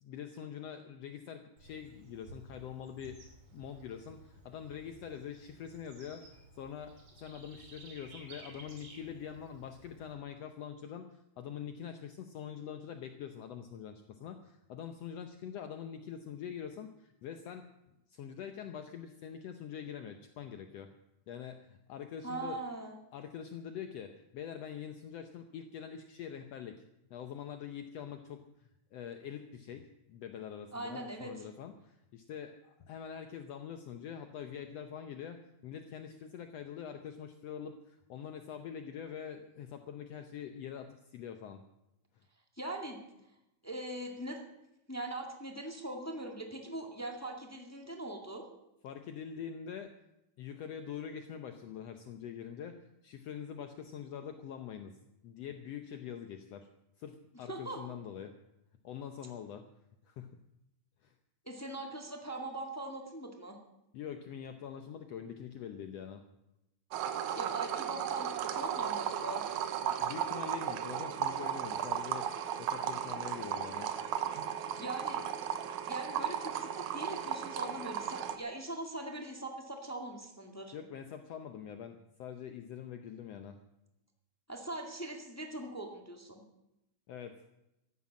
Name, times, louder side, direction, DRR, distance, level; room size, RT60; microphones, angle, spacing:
voice 1, 0.0-17.7 18.1-20.9 21.3-22.6 23.1-26.8 27.1-41.6 48.8-49.9 50.4-52.8 53.0-55.0 55.2-56.7 57.0-58.3 58.8-59.7 60.0-60.4 61.0-61.1 63.9-66.2 70.0-73.9 80.7-83.6 87.1-87.4, left 8 dB, 70° left, 7 dB, 1.8 m, -44 dB
Bird / Insect, 1.6-10.1, right 2 dB, 50° right, 3.7 m, -55 dB
voice 2, 22.2-23.0 30.7-31.3 42.6-43.0 43.6-44.4 44.9-48.4 57.5-57.8 61.4-63.6 67.3-69.5 74.8-75.3 75.9-80.7 84.5-86.4, right 2 dB, 10° left, 3 dB, 1.1 m, -41 dB
sound 1, 66.9-78.4, right 9 dB, 85° right, 2.5 m, -35 dB
14.0 x 11.5 x 7.4 m, 0.87 s
omnidirectional pair, 3.4 m